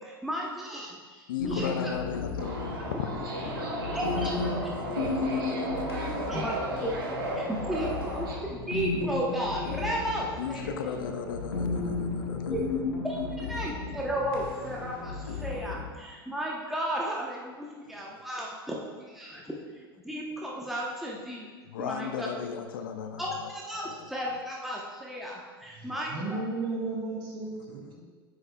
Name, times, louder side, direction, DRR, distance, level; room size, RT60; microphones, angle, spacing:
voice 1, 0.0-1.9 3.7-4.3 4.6-5.0 5.3-6.9 7.4-10.7 12.5-12.6 13.0-18.8 19.1-19.5 20.0-21.5 21.8-22.3 23.2-26.4, equal, ahead, -3 dB, 1.0 m, -34 dB
voice 2, 1.3-4.3 4.6-5.7 6.2-6.4 7.4-7.5 10.4-12.8 15.6-15.7 18.0-18.2 19.3-19.4 21.7-23.5 23.8-24.1, left 7 dB, 60° left, 7 dB, 0.6 m, -37 dB
sound 1, 1.4-15.9, left 4 dB, 75° left, 1.5 m, -34 dB
Subway metro underground, 2.4-8.3, right 2 dB, 65° right, 2.4 m, -35 dB
voice 3, 25.7-28.0, right 3 dB, 35° right, -2 dB, 2.4 m, -34 dB
10.0 x 7.8 x 2.3 m, 1.5 s
figure-of-eight pair, 85°, 13 cm